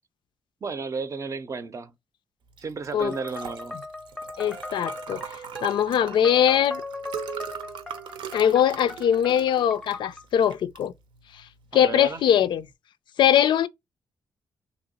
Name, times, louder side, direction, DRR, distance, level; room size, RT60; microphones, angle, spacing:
voice 1, 0.6-1.9 2.6-3.8 11.7-12.2, right 4 dB, 40° right, 0.5 m, -33 dB
Liquid, 2.5-12.7, right 8 dB, 80° right, 0.7 m, -41 dB
sound 1, 3.0-10.2, left 2 dB, 5° left, 0.6 m, -39 dB
voice 2, 4.4-5.2 5.6-6.8 8.3-10.9 11.3-11.4 11.7-12.7 13.2-13.7, left 9 dB, 75° left, 0.3 m, -21 dB
2.9 x 2.9 x 4.0 m
cardioid pair, 90°, 8 cm